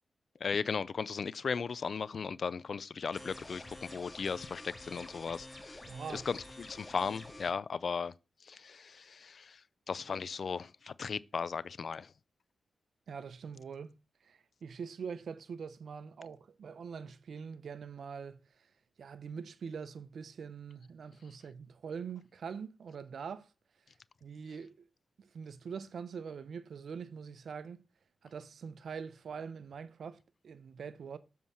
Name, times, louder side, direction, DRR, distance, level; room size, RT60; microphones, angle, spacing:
voice 1, 0.4-5.8 6.1-8.1 8.4-9.6 9.9-12.1, left 5 dB, 65° left, 0.4 m, -36 dB
sound 1, 3.1-7.5, left 1 dB, 25° left, 2.0 m, -49 dB
voice 2, 5.9-6.3 13.1-13.9 14.2-18.7 19.0-23.5 24.2-24.8 25.2-27.8 28.2-30.2 30.4-31.2, right 6 dB, 75° right, 0.6 m, -43 dB
7.2 x 4.6 x 5.7 m
cardioid pair, 50°, 0 cm